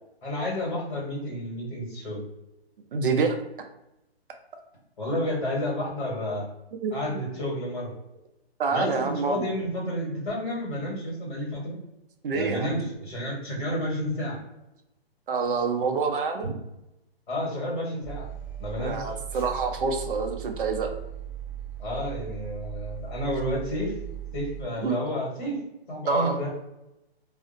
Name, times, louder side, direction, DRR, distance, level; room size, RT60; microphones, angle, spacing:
voice 1, 0.2-2.2 5.0-6.4 6.9-7.9 8.7-11.8 12.3-14.4 16.4-16.5 17.3-18.3 18.6-19.0 21.8-24.0 24.3-25.6 25.9-26.5, left 1 dB, 50° left, -2 dB, 1.3 m, -30 dB
voice 2, 2.9-3.4 6.8-7.2 8.6-9.5 12.2-12.7 15.3-16.5 18.8-20.9 24.8-25.0 26.1-26.4, right 4 dB, 55° right, 4 dB, 0.5 m, -27 dB
sound 1, 18.0-24.6, right 10 dB, 5° right, 1.1 m, -38 dB
2.5 x 2.0 x 2.5 m, 0.89 s
hypercardioid pair, 155°, 31 cm